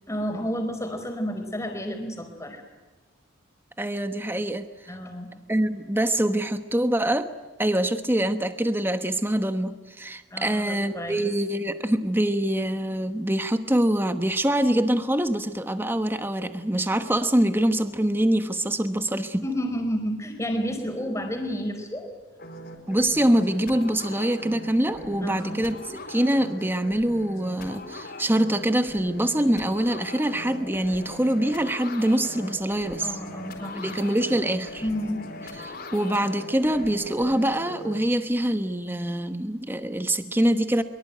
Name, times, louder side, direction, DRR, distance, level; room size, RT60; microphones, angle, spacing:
voice 1, 0.1-2.6 4.9-5.3 10.3-11.2 19.4-22.1 25.2-25.6 33.0-33.9 34.8-35.3, equal, 15° left, 5 dB, 4.7 m, -31 dB
voice 2, 3.8-4.9 5.5-7.3 7.6-19.4 22.9-25.7 26.1-33.1 33.7-34.8 35.6-40.8, right 1 dB, 10° right, 8 dB, 1.1 m, -24 dB
sound 1, 22.4-38.0, left 1 dB, 50° left, 4.8 m, -40 dB
24.0 x 24.0 x 9.2 m, 1.2 s
head